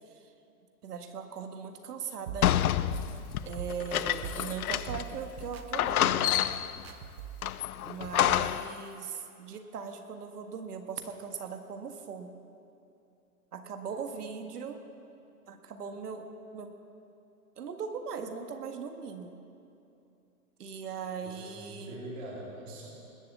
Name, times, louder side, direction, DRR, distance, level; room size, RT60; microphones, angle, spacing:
voice 1, 0.8-2.8 3.4-6.4 7.8-12.3 13.5-14.8 15.5-16.3 16.5-16.7 17.6-19.4 20.6-22.0, right 6 dB, 85° right, 5 dB, 1.8 m, -39 dB
sound 1, 2.3-7.5, right 6 dB, 40° right, 0.9 m, -43 dB
sound 2, 2.4-5.2 5.4-5.5 5.7-6.8 7.4-8.8, left 12 dB, 70° left, 0.6 m, -28 dB
voice 2, 21.2-22.9, right 1 dB, 20° right, -4 dB, 2.4 m, -43 dB
20.0 x 7.7 x 8.4 m, 2.7 s
hypercardioid pair, 175°, 45 cm